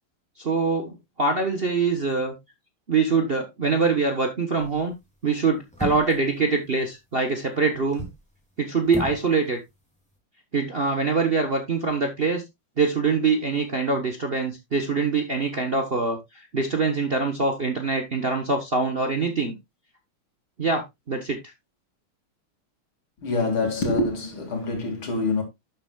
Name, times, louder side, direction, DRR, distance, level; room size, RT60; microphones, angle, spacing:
voice 1, 0.4-2.3 2.9-4.9 5.2-8.1 8.6-9.6 10.5-12.4 12.8-19.5 20.6-21.4, right 4 dB, 35° right, 1.0 m, -24 dB
sound 1, 4.6-4.9 5.7-6.3 7.7-8.2 8.9-9.3 9.5-9.6, right 1 dB, 5° left, 3.0 m, -34 dB
voice 2, 23.2-25.4, left 3 dB, 70° left, 3.2 m, -25 dB
12.0 x 7.4 x 2.3 m
omnidirectional pair, 2.4 m